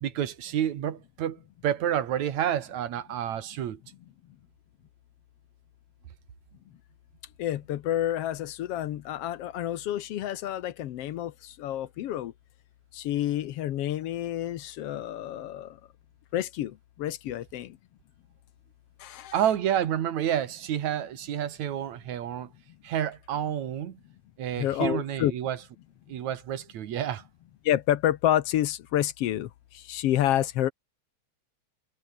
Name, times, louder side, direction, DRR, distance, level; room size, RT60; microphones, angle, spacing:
voice 1, 0.0-3.8 19.3-22.5 22.8-24.0 24.4-25.6 26.1-27.2, right 10 dB, 75° right, 2.9 m, -29 dB
voice 2, 7.4-12.3 12.9-15.8 16.3-17.8 19.0-19.3 24.6-25.3 27.6-30.7, left 12 dB, 65° left, 1.7 m, -29 dB
omnidirectional pair, 3.4 m